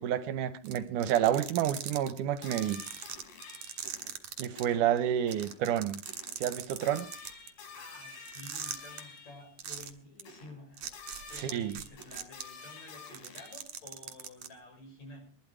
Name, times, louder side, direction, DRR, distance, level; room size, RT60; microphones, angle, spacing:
voice 1, 0.0-2.8 4.4-6.0 6.4-7.1 11.4-11.7, right 10 dB, 75° right, 2.1 m, -29 dB
sound 1, 0.6-4.6 5.0-5.1 5.3-7.5 8.3-9.0 9.6-9.9 10.2-10.3 10.8-12.4 13.0-14.5, right 10 dB, 55° right, 2.3 m, -40 dB
sound 2, 2.4-4.1 4.6-4.9 5.3-5.6 6.1-6.4 6.8-9.6 10.3-10.6 10.9-13.6, left 5 dB, 80° left, 4.4 m, -49 dB
voice 2, 4.7-5.1 7.7-10.9 11.3-15.4, left 2 dB, 50° left, 7.1 m, -51 dB
22.0 x 12.0 x 4.8 m
omnidirectional pair, 4.1 m